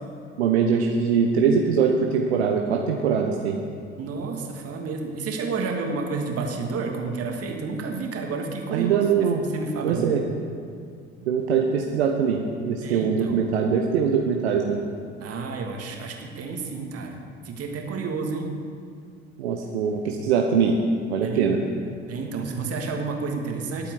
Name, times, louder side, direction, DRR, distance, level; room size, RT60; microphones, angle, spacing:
voice 1, 0.4-3.6 8.7-9.4 9.8-10.2 11.2-14.8 19.4-20.8 21.1-21.6, right 6 dB, 75° right, 2 dB, 1.0 m, -22 dB
voice 2, 4.0-9.0 9.4-10.1 12.8-13.4 15.2-18.5 21.2-21.5 22.1-23.9, right 4 dB, 45° right, 1 dB, 2.4 m, -30 dB
20.5 x 8.5 x 4.9 m, 2.2 s
figure-of-eight pair, 60°, 32 cm